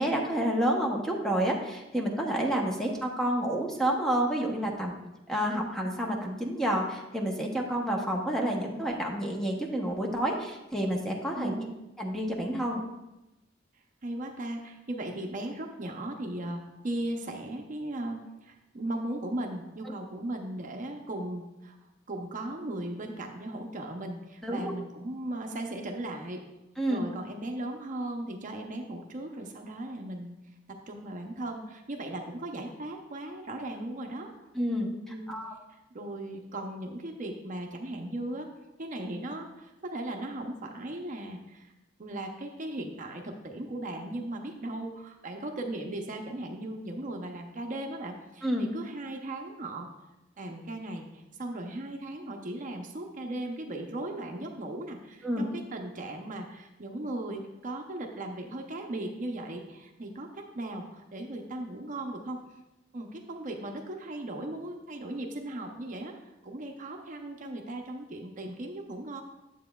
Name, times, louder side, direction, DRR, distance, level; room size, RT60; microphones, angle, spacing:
voice 1, 0.0-4.9 5.3-11.5 12.0-12.8 24.4-24.7 26.8-27.0 34.5-35.5 48.4-48.7 55.2-55.5, right 1 dB, ahead, 0 dB, 0.9 m, -29 dB
voice 2, 11.3-11.8 14.0-21.8 22.1-26.4 26.9-30.4 30.7-34.3 35.1-35.3 35.7-38.5 38.8-41.7 42.0-49.9 50.4-62.4 62.9-66.1 66.4-69.2, right 1 dB, 45° right, 3 dB, 0.7 m, -37 dB
9.2 x 7.6 x 2.3 m, 0.98 s
head